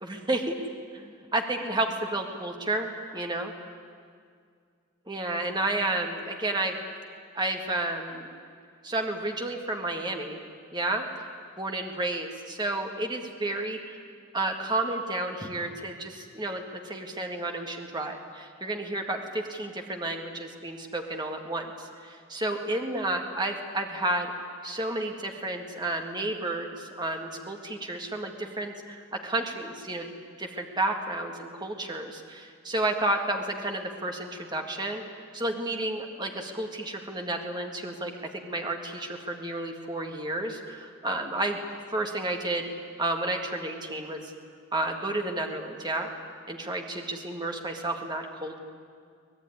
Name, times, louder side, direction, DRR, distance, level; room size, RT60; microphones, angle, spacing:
voice 1, 0.0-0.6 0.9-2.9 3.1-3.5 5.1-6.7 7.3-8.4 8.8-10.4 10.7-11.1 11.6-14.0 14.3-24.3 24.6-30.1 30.4-35.0 35.3-41.6 41.9-42.6 43.0-44.2 44.7-46.1 46.5-48.6, right 2 dB, 20° right, 3 dB, 1.9 m, -31 dB
24.0 x 19.0 x 9.8 m, 2.2 s
head